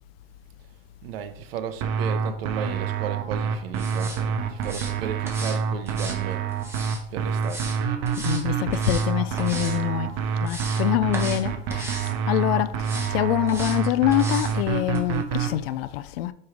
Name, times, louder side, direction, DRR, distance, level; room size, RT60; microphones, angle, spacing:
voice 1, 1.0-6.4 7.1-7.7, right 8 dB, 85° right, 0.9 m, -34 dB
sound 1, 1.8-15.5, right 6 dB, 50° right, 1.0 m, -27 dB
sound 2, 3.7-4.2 4.6-4.9 5.2-5.6 5.9-7.0 7.4-7.8 8.0-8.4 8.7-9.1 9.4-9.8 10.2-10.8 11.1-11.4 11.7-12.1 12.8-13.1 13.5-13.8 14.1-14.5 14.9-15.0, right 2 dB, 10° right, 1.1 m, -36 dB
voice 2, 8.2-10.1 10.4-16.3, left 14 dB, 85° left, 0.5 m, -25 dB
5.4 x 4.7 x 4.9 m
supercardioid pair, 160°, 29 cm